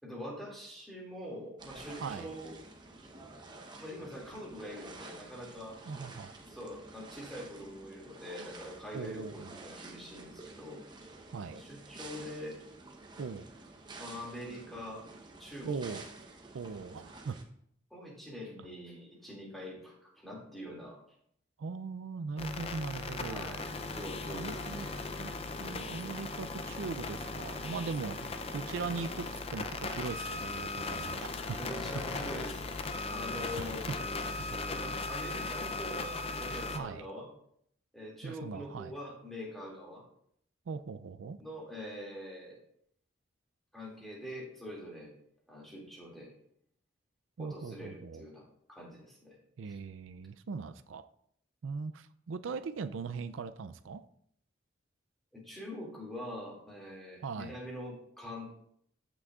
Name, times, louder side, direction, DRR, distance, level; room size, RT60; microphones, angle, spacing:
voice 1, 0.0-2.6 3.8-5.8 6.5-10.8 11.5-12.6 14.0-15.1 15.4-15.8 17.9-21.0 23.3-24.9 31.6-34.1 34.7-37.3 37.9-40.0 41.4-42.6 43.7-45.1 45.5-46.3 47.4-49.4 49.7-49.8 55.3-58.5, left 1 dB, ahead, -4 dB, 2.3 m, -44 dB
sound 1, 1.6-17.4, right 3 dB, 25° right, 0.9 m, -50 dB
voice 2, 2.0-2.3 5.8-6.3 8.9-9.6 11.3-11.6 13.2-13.5 15.6-16.1 16.5-17.4 21.6-23.5 24.2-24.9 25.2-25.3 25.6-31.6 33.6-33.7 36.7-37.0 38.2-38.9 40.7-41.4 47.4-48.2 49.6-51.1 51.6-54.0 57.2-57.6, right 5 dB, 90° right, 11 dB, 0.4 m, -40 dB
sound 2, 22.4-36.8, left 3 dB, 30° left, 0.5 m, -38 dB
14.5 x 6.0 x 2.4 m, 0.69 s
head